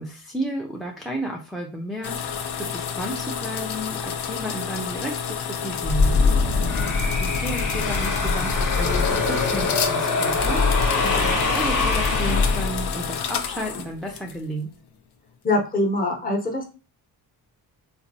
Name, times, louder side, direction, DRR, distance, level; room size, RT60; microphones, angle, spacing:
voice 1, 0.0-6.2 7.2-14.7, right 1 dB, ahead, 0 dB, 0.3 m, -32 dB
sound 1, 2.0-14.6, left 7 dB, 80° left, 0.6 m, -30 dB
sound 2, 5.8-13.1, left 3 dB, 55° left, 1.0 m, -22 dB
voice 2, 15.4-16.6, left 2 dB, 20° left, 0 dB, 0.8 m, -23 dB
4.1 x 2.6 x 2.7 m, 0.32 s
wide cardioid pair, 155°, 39 cm